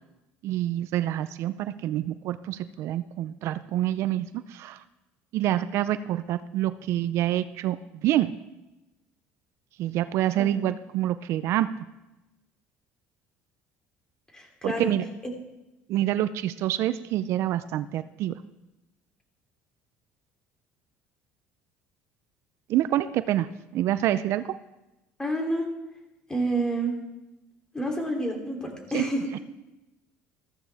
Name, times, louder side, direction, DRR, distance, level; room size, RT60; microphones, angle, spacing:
voice 1, 0.4-4.8 5.3-8.3 9.8-11.7 14.6-15.0 15.9-18.4 22.7-24.6 28.9-29.1, right 13 dB, 65° right, 13 dB, 0.5 m, -27 dB
voice 2, 14.3-14.9 25.2-25.7 26.3-26.9 27.7-29.4, right 1 dB, 15° left, 1 dB, 3.0 m, -29 dB
14.5 x 14.0 x 3.5 m, 0.99 s
cardioid pair, 110°, 5 cm